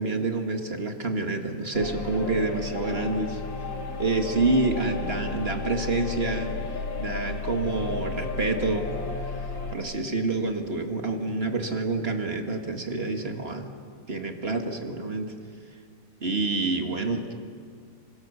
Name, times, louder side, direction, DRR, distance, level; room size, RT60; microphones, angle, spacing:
voice 1, 0.0-3.4 4.0-6.5 7.0-8.9 9.7-13.7 14.1-15.3 16.2-17.3, right 3 dB, 30° right, 4 dB, 1.8 m, -27 dB
sound 1, 1.7-9.7, left 3 dB, 60° left, 2.5 m, -33 dB
28.0 x 25.0 x 7.0 m, 2.2 s
omnidirectional pair, 2.4 m